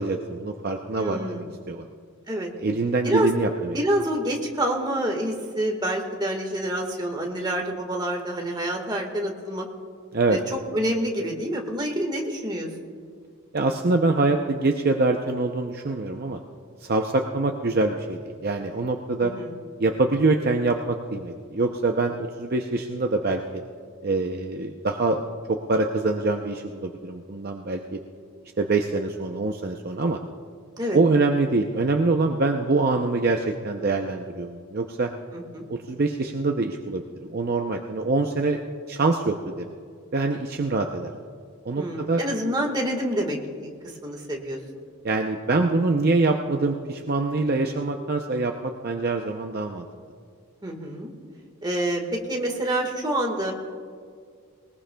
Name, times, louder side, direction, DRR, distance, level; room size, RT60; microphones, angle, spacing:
voice 1, 0.0-1.9 2.6-3.8 10.1-10.4 13.5-16.4 16.8-19.3 19.8-23.4 24.0-25.2 25.5-28.0 28.6-30.2 30.9-35.1 35.7-38.6 38.9-39.7 40.1-41.1 41.6-42.2 45.0-49.9, right 3 dB, 45° right, 3 dB, 0.6 m, -24 dB
voice 2, 1.0-1.5 2.3-2.5 3.0-3.3 3.7-9.6 10.3-10.4 10.7-12.7 19.2-19.5 30.8-31.0 35.3-35.7 41.8-43.7 44.0-44.6 50.6-51.1 51.6-53.5, right 1 dB, 20° right, 2 dB, 1.6 m, -27 dB
21.0 x 20.0 x 2.3 m, 2.1 s
head